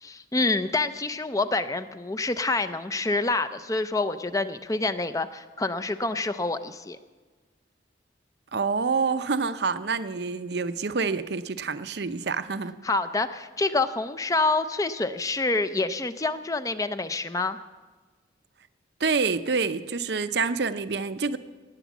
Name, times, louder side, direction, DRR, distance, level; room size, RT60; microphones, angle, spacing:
voice 1, 0.0-7.0 12.8-17.6, left 3 dB, 20° left, 0.5 m, -27 dB
voice 2, 8.5-12.7 19.0-21.4, right 4 dB, 60° right, 0.7 m, -27 dB
17.5 x 9.2 x 7.2 m
head